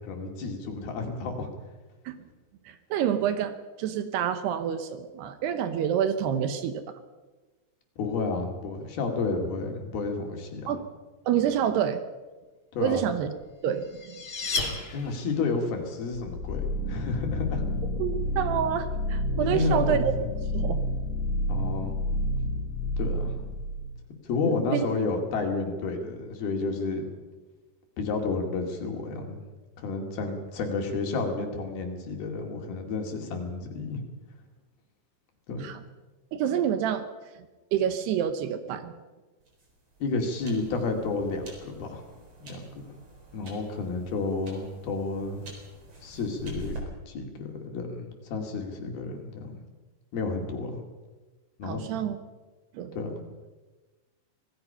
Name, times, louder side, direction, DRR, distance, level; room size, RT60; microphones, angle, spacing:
voice 1, 0.0-1.5 8.0-10.7 12.7-13.0 14.9-17.6 19.4-20.1 21.5-22.0 23.0-23.4 24.2-27.1 28.0-29.4 29.8-34.0 35.5-35.7 40.0-42.0 42.4-42.9 43.3-45.4 46.0-46.8 47.1-49.6 50.1-50.8 51.6-51.9 52.9-53.2, left 3 dB, 65° left, 3 dB, 4.2 m, -31 dB
voice 2, 2.7-6.8 10.7-10.9 11.3-12.0 12.8-13.3 13.6-14.2 18.0-20.1 20.5-20.8 24.5-24.9 35.6-35.8 36.3-37.1 37.7-38.9 51.6-52.2 52.7-53.0, right 9 dB, 75° right, 9 dB, 3.0 m, -28 dB
sound 1, 13.5-15.5, left 3 dB, 35° left, 3.0 m, -33 dB
sound 2, 16.1-24.0, left 1 dB, 85° left, 4.6 m, -30 dB
sound 3, 39.4-46.8, right 2 dB, 35° right, 4.9 m, -46 dB
26.0 x 18.5 x 5.6 m, 1.2 s
omnidirectional pair, 4.9 m